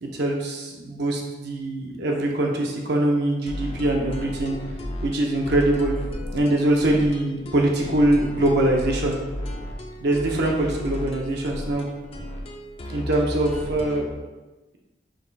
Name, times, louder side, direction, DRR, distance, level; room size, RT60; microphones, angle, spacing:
voice 1, 0.0-4.6 5.0-5.9 6.3-9.2 10.0-11.8 12.9-14.1, right 1 dB, 65° right, 0 dB, 0.7 m, -23 dB
sound 1, 3.5-14.1, left 1 dB, 35° left, 0.5 m, -34 dB
5.1 x 2.3 x 3.9 m, 1.1 s
head